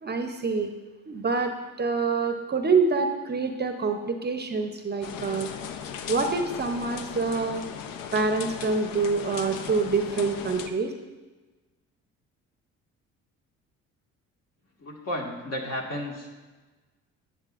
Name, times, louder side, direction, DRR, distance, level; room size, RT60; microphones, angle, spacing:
voice 1, 0.0-0.7 1.1-5.5 6.1-7.6 8.1-10.9, right 4 dB, 30° right, 6 dB, 0.7 m, -26 dB
sound 1, 5.0-10.7, left 7 dB, 70° left, 0.7 m, -37 dB
voice 2, 14.8-16.3, left 1 dB, 45° left, 0 dB, 1.8 m, -33 dB
9.5 x 7.6 x 2.5 m, 1.3 s
supercardioid pair, 65°, 35 cm